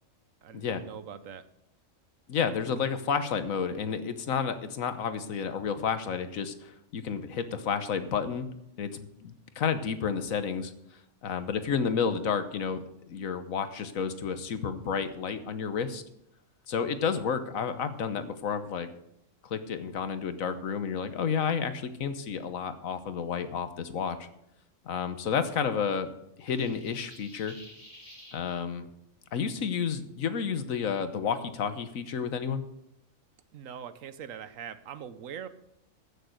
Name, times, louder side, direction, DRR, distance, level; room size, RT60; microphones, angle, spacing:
voice 1, 0.4-1.5 33.5-35.5, right 8 dB, 75° right, 13 dB, 1.2 m, -42 dB
voice 2, 2.3-8.5 8.8-10.7 11.2-16.0 16.7-18.9 19.4-24.3 24.8-26.1 26.4-27.6 28.3-28.9 29.3-32.6, left 6 dB, 85° left, 10 dB, 1.4 m, -31 dB
sound 1, 26.4-28.4, equal, 30° left, 4.5 m, -51 dB
14.5 x 6.9 x 6.5 m, 0.81 s
omnidirectional pair, 1.4 m